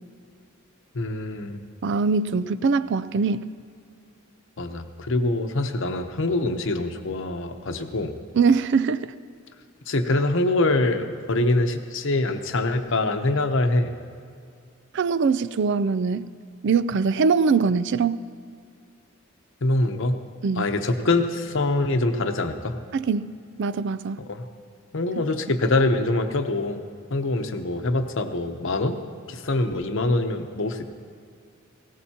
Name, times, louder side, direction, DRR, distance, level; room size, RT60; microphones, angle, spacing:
voice 1, 0.9-1.6 4.6-8.1 9.9-13.9 19.6-20.2 20.6-22.8 24.2-24.4 24.9-26.9 27.1-29.0 29.3-30.9, left 2 dB, 65° left, 7 dB, 0.9 m, -24 dB
voice 2, 1.8-3.5 8.3-9.1 14.9-16.3 16.6-18.2 20.4-20.7 22.9-23.3 23.6-24.2 25.2-25.3, right 5 dB, 60° right, 15 dB, 0.4 m, -22 dB
18.5 x 17.5 x 2.9 m, 2.3 s
head